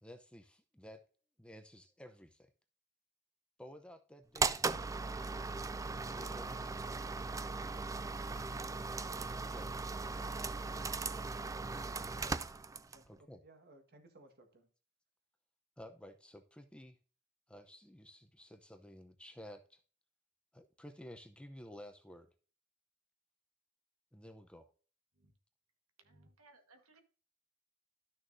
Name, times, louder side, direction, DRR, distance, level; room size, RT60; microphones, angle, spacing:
voice 1, 0.0-1.0 1.4-2.5 3.6-4.9 6.1-6.8 9.3-9.7 11.6-11.9 13.1-13.4 15.8-17.0 17.5-19.8 20.5-22.3 24.1-24.7, left 1 dB, 5° left, 0.7 m, -53 dB
sound 1, 4.3-13.1, right 4 dB, 15° right, 0.3 m, -38 dB
voice 2, 12.9-14.7, right 2 dB, 50° right, 1.6 m, -61 dB
voice 3, 26.0-27.0, right 2 dB, 80° right, 1.5 m, -64 dB
12.5 x 6.4 x 2.7 m
head